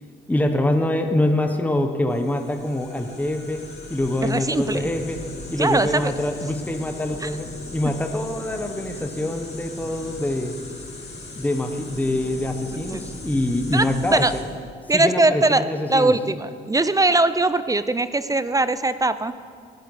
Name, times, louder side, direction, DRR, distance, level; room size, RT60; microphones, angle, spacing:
voice 1, 0.3-5.2 5.5-10.5 11.3-14.3 14.9-16.1, left 1 dB, 10° left, 5 dB, 1.2 m, -25 dB
sound 1, 2.1-14.4, left 2 dB, 35° left, 2.6 m, -38 dB
voice 2, 4.2-4.9 5.6-6.1 7.2-7.3 12.9-13.0 13.7-14.3 14.9-15.6 15.9-19.4, right 2 dB, 15° right, 13 dB, 0.5 m, -21 dB
18.0 x 11.0 x 4.9 m, 2.1 s
cardioid pair, 90°, 20 cm